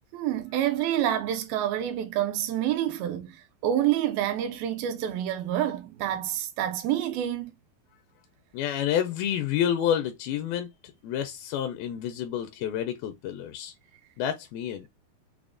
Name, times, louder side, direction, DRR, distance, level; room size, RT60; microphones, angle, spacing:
voice 1, 0.1-7.5, right 11 dB, 80° right, 2.4 m, -28 dB
voice 2, 8.5-13.7 14.2-14.9, left 10 dB, 85° left, 2.3 m, -29 dB
5.9 x 2.0 x 2.4 m
omnidirectional pair, 4.3 m